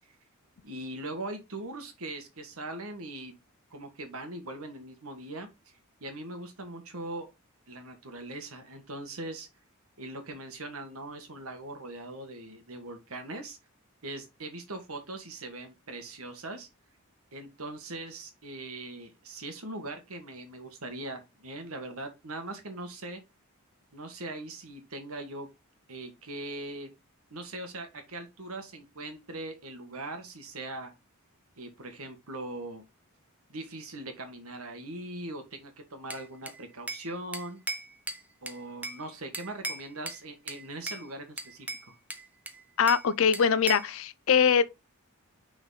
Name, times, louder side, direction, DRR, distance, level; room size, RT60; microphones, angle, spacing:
voice 1, 0.6-3.4 3.7-5.5 6.0-7.3 7.7-9.5 10.0-13.6 14.0-16.7 17.3-23.2 23.9-25.5 25.9-26.9 27.3-30.9 31.6-32.8 33.5-37.6 38.4-41.9, right 2 dB, 80° right, 1.6 m, -40 dB
Bell / Glass, 36.1-37.1 37.3-39.0 39.3-40.2 40.5-41.0 41.4-43.1 43.3-44.0, right 2 dB, 5° right, 0.6 m, -38 dB
voice 2, 42.8-44.6, left 7 dB, 65° left, 0.5 m, -23 dB
5.9 x 4.0 x 4.0 m
head